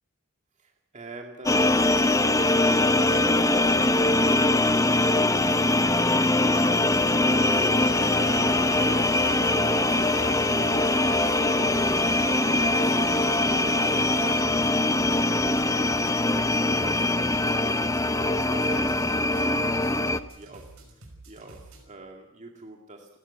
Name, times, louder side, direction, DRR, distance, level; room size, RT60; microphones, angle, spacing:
voice 1, 0.6-23.2, right 2 dB, 35° right, 2 dB, 2.1 m, -45 dB
sound 1, 1.5-20.2, left 2 dB, 15° left, 0.8 m, -22 dB
sound 2, 6.8-21.8, right 2 dB, 75° right, 5.6 m, -49 dB
Alarm, 7.4-14.4, right 3 dB, 50° right, 3.6 m, -39 dB
29.0 x 12.5 x 8.2 m, 0.98 s
head